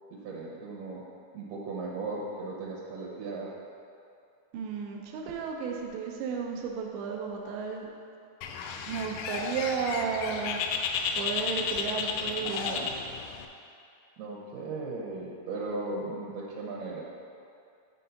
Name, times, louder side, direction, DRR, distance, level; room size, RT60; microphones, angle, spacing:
voice 1, 0.1-1.0 1.3-3.5 14.2-17.1, right 3 dB, 75° right, -3 dB, 2.7 m, -37 dB
voice 2, 4.5-7.9 8.9-10.6 11.1-12.9, right 6 dB, 90° right, 0 dB, 3.1 m, -33 dB
Bird, 8.4-13.5, left 6 dB, 80° left, 2.6 m, -33 dB
10.5 x 3.7 x 5.8 m, 2.5 s
omnidirectional pair, 4.9 m